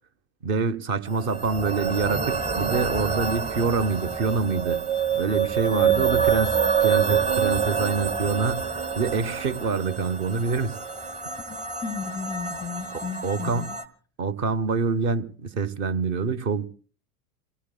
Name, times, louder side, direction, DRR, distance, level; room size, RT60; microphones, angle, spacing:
voice 1, 0.4-4.8 5.1-10.8 13.2-13.7 14.2-16.7, right 4 dB, 35° right, 1.0 m, -26 dB
sound 1, 1.1-13.8, right 7 dB, 15° right, 1.2 m, -27 dB
voice 2, 5.7-6.1 11.5-13.8, left 5 dB, 10° left, 0.7 m, -35 dB
29.5 x 18.5 x 2.3 m
figure-of-eight pair, 90°, 46 cm